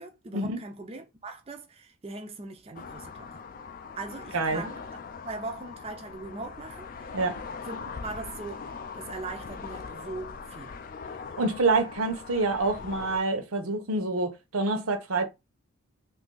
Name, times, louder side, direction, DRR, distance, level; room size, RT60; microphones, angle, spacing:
voice 1, 0.0-3.4 4.0-7.1 7.6-10.7, right 3 dB, 25° right, 0.4 m, -40 dB
sound 1, 2.7-13.2, left 5 dB, 40° left, 0.3 m, -41 dB
voice 2, 11.4-15.3, right 3 dB, 90° right, 0.8 m, -27 dB
2.7 x 2.6 x 3.8 m
head